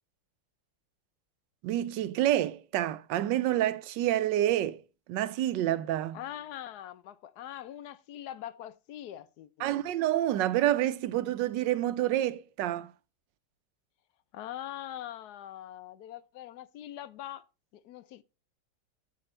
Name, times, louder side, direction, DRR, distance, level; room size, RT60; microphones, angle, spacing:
voice 1, 1.6-4.8 5.1-6.2 9.6-12.9, right 13 dB, 90° right, 1.3 m, -28 dB
voice 2, 6.1-9.7 14.3-17.4 17.7-18.2, left 12 dB, 75° left, 1.0 m, -42 dB
8.5 x 7.7 x 3.2 m
omnidirectional pair, 1.9 m